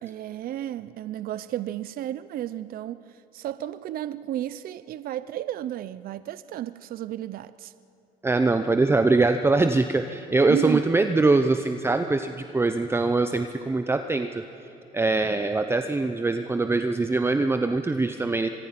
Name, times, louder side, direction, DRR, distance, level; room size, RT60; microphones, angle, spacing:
voice 1, 0.0-7.7 10.5-10.8, right 12 dB, 60° right, 15 dB, 0.6 m, -32 dB
voice 2, 8.2-14.4 14.9-18.5, right 3 dB, 15° right, 8 dB, 0.7 m, -23 dB
25.0 x 21.0 x 5.9 m, 3.0 s
cardioid pair, 110°, 17 cm